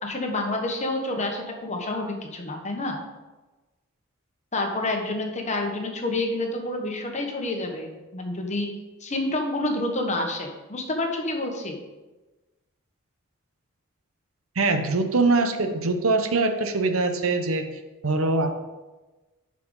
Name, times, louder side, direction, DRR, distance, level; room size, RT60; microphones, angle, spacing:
voice 1, 0.0-3.0 4.5-8.7 9.0-11.8, left 2 dB, 35° left, 3 dB, 1.2 m, -28 dB
voice 2, 14.6-17.7 18.0-18.5, right 3 dB, 85° right, 7 dB, 0.9 m, -23 dB
11.5 x 5.0 x 3.9 m, 1.1 s
head